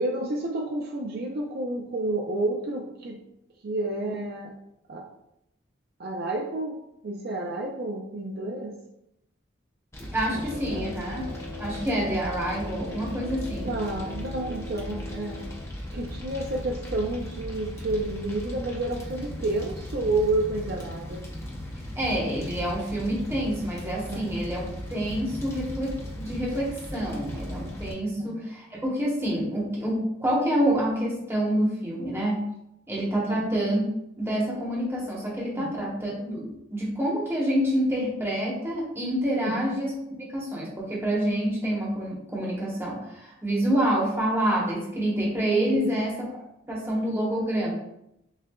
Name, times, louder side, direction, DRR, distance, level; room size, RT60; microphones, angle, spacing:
voice 1, 0.0-3.2 3.6-4.5 4.9-5.0 6.0-6.8 7.0-8.7 10.7-11.1 13.6-15.4 15.9-21.3 24.1-24.3 28.3-28.4 33.3-33.5 35.6-35.7 39.4-39.7 45.7-45.9, right 2 dB, 50° right, 1 dB, 0.4 m, -30 dB
Fire, 9.9-27.9, left 1 dB, 15° left, 0.7 m, -37 dB
voice 2, 10.1-11.2 11.6-13.7 22.0-32.4 32.9-33.8 34.2-46.3 46.6-47.7, right 1 dB, 15° right, -4 dB, 1.0 m, -27 dB
Brass instrument, 10.2-15.8, left 4 dB, 85° left, 0.4 m, -42 dB
6.2 x 2.5 x 2.2 m, 0.82 s
head